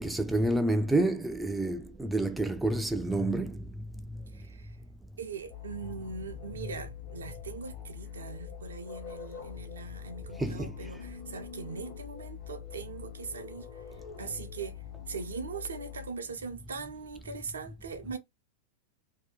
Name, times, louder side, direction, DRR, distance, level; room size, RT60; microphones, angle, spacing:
voice 1, 0.0-3.5 10.4-10.7, right 2 dB, 5° right, 0.3 m, -28 dB
voice 2, 4.3-4.8 5.2-18.2, right 5 dB, 70° right, 0.6 m, -41 dB
sound 1, 5.5-16.1, left 10 dB, 45° left, 0.9 m, -44 dB
2.7 x 2.2 x 3.6 m
figure-of-eight pair, 90°, 0 cm